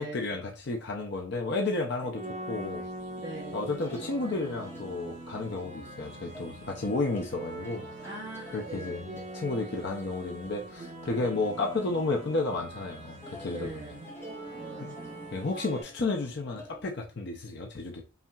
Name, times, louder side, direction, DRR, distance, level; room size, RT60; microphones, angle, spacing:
voice 1, 0.0-2.8 3.5-7.9 8.5-13.9 14.8-15.0 15.3-18.0, left 3 dB, 55° left, 0.6 m, -32 dB
sound 1, 2.1-15.8, right 1 dB, 35° right, 1.1 m, -43 dB
voice 2, 3.2-3.6 8.0-9.0 13.5-14.1 14.5-15.3, right 2 dB, 20° right, 0.9 m, -42 dB
sound 2, 3.3-12.1 12.4-12.8 13.2-16.8, left 1 dB, 10° left, 0.7 m, -51 dB
5.5 x 2.8 x 2.3 m
head